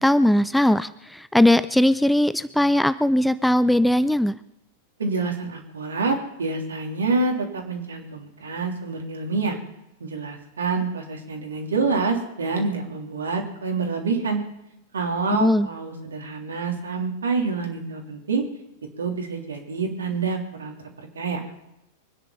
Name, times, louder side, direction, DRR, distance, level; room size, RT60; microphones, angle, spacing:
voice 1, 0.0-4.4 15.3-15.7, left 1 dB, 5° left, 15 dB, 0.5 m, -19 dB
voice 2, 5.0-9.6 10.0-14.4 14.9-18.4 19.0-20.7 21.1-21.4, right 4 dB, 70° right, 2 dB, 3.3 m, -27 dB
23.5 x 10.0 x 5.7 m, 0.86 s
figure-of-eight pair, 90°, 0 cm